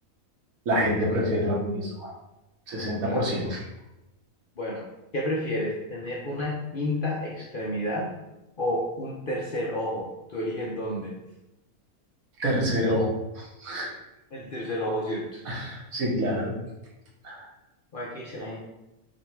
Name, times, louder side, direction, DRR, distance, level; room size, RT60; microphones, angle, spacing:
voice 1, 0.7-2.1 2.7-3.6 12.4-13.9 15.5-16.6 17.2-17.5, equal, 70° right, -2 dB, 1.5 m, -27 dB
voice 2, 3.0-3.5 4.6-4.9 5.1-8.1 8.6-11.1 14.3-15.4 17.9-18.6, left 1 dB, 50° left, -3 dB, 0.7 m, -31 dB
5.1 x 2.3 x 4.4 m, 0.95 s
omnidirectional pair, 1.5 m